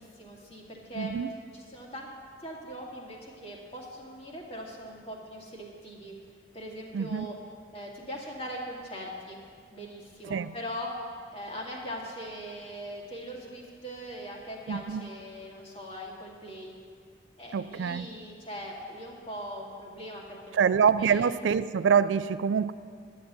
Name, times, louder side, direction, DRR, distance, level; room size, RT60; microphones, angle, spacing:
voice 1, 0.0-1.1 1.5-2.1 2.4-6.1 6.5-7.3 7.7-9.4 9.7-10.9 11.3-16.7 17.4-21.3, equal, 30° left, -2 dB, 2.1 m, -41 dB
voice 2, 1.0-1.3 6.9-7.3 10.3-10.6 14.7-15.1 17.5-18.1 20.5-22.7, right 7 dB, 85° right, 15 dB, 0.4 m, -25 dB
11.0 x 7.4 x 9.4 m, 2.1 s
head